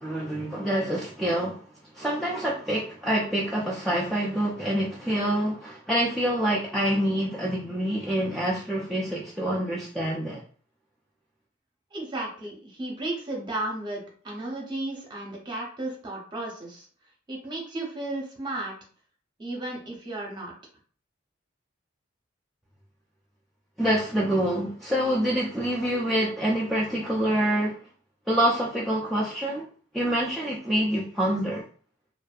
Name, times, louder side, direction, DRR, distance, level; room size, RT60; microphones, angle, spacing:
voice 1, 0.0-1.6 1.9-10.4 23.8-27.8 28.3-29.7 29.9-31.6, right 1 dB, ahead, 0.3 m, -26 dB
voice 2, 11.9-16.9 17.3-18.7 19.4-20.5, right 2 dB, 25° right, 0.7 m, -34 dB
2.6 x 2.3 x 2.4 m
head